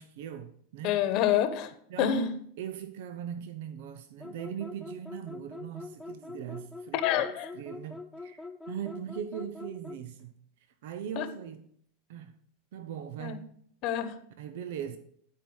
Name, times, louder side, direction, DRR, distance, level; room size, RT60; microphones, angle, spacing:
voice 1, 0.0-1.0 1.9-7.3 7.5-10.4 10.8-11.7 12.1-12.3 12.7-13.5 14.4-15.0, right 8 dB, 70° right, 0.7 m, -39 dB
voice 2, 0.8-1.7 2.0-2.3 6.9-7.5 11.2-11.3 13.2-13.4 13.8-14.2, left 11 dB, 50° left, 1.1 m, -27 dB
sound 1, 4.2-10.1, left 3 dB, 5° left, 0.6 m, -43 dB
11.5 x 4.6 x 6.3 m
hypercardioid pair, 105°, 0 cm